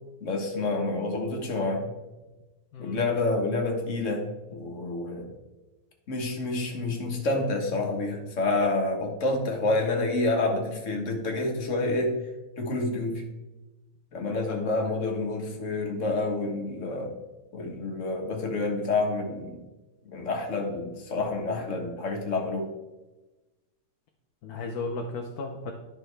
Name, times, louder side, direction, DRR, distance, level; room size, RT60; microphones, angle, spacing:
voice 1, 0.2-1.9 2.8-5.3 6.1-12.1 12.6-13.2 14.1-17.1 17.5-19.6 20.0-22.7, left 2 dB, 45° left, 2 dB, 1.6 m, -28 dB
voice 2, 2.7-3.0 14.5-14.9 24.4-25.7, left 3 dB, 65° left, 2 dB, 1.2 m, -35 dB
11.0 x 5.7 x 3.3 m, 1.1 s
omnidirectional pair, 1.9 m